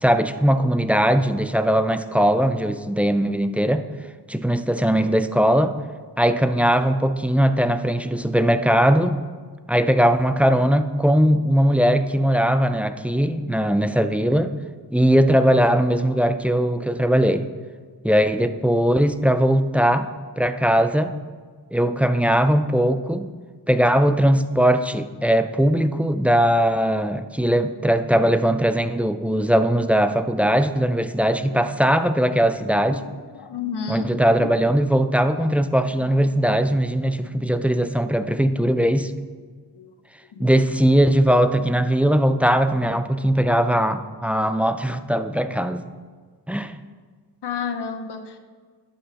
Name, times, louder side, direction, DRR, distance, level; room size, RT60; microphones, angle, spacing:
voice 1, 0.0-3.9 4.3-5.8 6.2-9.2 9.7-14.5 14.9-17.5 18.0-20.1 20.4-21.1 21.7-23.3 23.7-33.0 33.9-39.1 40.4-45.8 46.5-46.7, equal, 5° right, 10 dB, 0.3 m, -20 dB
voice 2, 32.9-34.1 34.4-34.5 35.3-35.5 37.2-37.5 38.3-38.4 38.7-39.1 39.7-39.9 40.3-40.5 47.4-48.4, left 6 dB, 70° left, 6 dB, 0.9 m, -32 dB
11.5 x 7.8 x 2.9 m, 1.5 s
wide cardioid pair, 95°, 42 cm